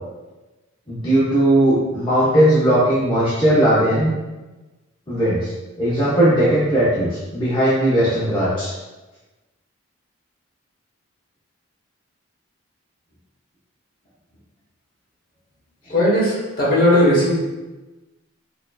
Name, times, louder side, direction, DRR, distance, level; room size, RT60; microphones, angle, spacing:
voice 1, 0.9-4.1 5.1-5.5 5.8-8.7, right 1 dB, 20° left, -11 dB, 0.6 m, -18 dB
voice 2, 15.9-17.3, left 1 dB, 45° left, -6 dB, 1.0 m, -17 dB
4.1 x 2.6 x 2.3 m, 1.1 s
head